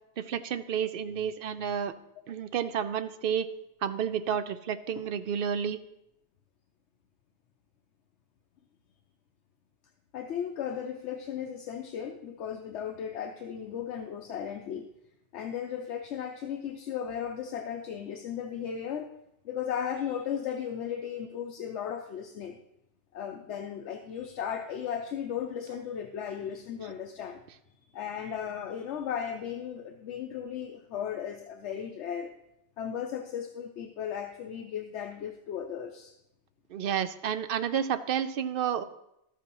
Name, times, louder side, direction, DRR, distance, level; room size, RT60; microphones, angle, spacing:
voice 1, 0.2-1.9 2.3-3.5 3.8-5.8 36.7-38.8, right 8 dB, 60° right, 12 dB, 0.6 m, -30 dB
voice 2, 10.1-14.9 15.3-19.1 19.4-22.6 23.1-27.4 27.9-32.3 32.8-36.1, left 8 dB, 80° left, 4 dB, 0.9 m, -36 dB
12.5 x 8.3 x 3.0 m, 0.82 s
omnidirectional pair, 1.2 m